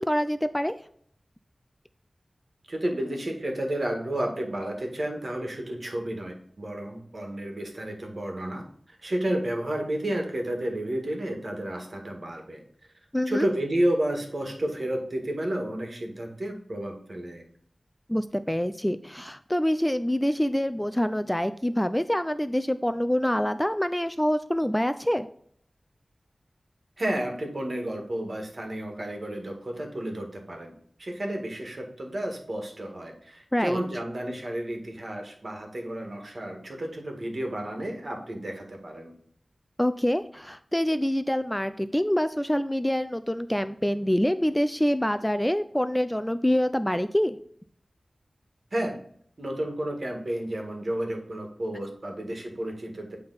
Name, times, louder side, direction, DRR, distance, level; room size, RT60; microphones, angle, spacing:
voice 1, 0.1-0.7 13.1-13.5 18.1-25.3 33.5-33.8 39.8-47.4, equal, 10° left, 11 dB, 0.4 m, -26 dB
voice 2, 2.7-12.6 13.3-17.4 27.0-30.7 31.0-39.1 48.7-49.0 49.4-53.2, right 1 dB, 55° right, 2 dB, 1.7 m, -31 dB
8.7 x 3.4 x 4.0 m, 0.62 s
wide cardioid pair, 65°, 0 cm